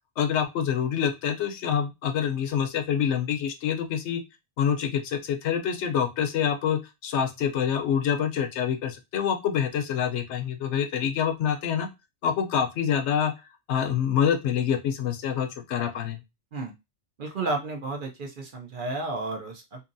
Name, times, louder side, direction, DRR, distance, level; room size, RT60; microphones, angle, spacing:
voice 1, 0.2-4.2 4.6-11.9 12.2-13.3 13.7-16.2, left 8 dB, 80° left, 6 dB, 0.9 m, -26 dB
voice 2, 17.2-19.8, right 2 dB, 55° right, 2 dB, 0.7 m, -32 dB
2.7 x 2.6 x 2.5 m, 0.24 s
omnidirectional pair, 1.2 m